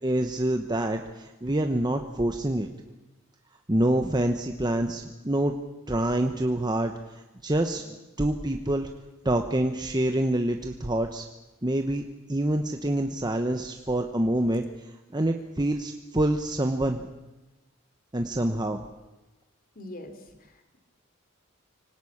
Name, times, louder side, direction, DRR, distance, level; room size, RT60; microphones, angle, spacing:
voice 1, 0.0-2.7 3.7-5.5 5.9-8.9 9.2-11.3 11.6-12.0 12.3-14.6 15.1-17.1 18.1-18.8, right 1 dB, 20° right, 5 dB, 1.1 m, -26 dB
voice 2, 19.7-20.8, left 1 dB, 40° left, 8 dB, 3.1 m, -43 dB
24.5 x 18.5 x 8.7 m, 1.1 s
head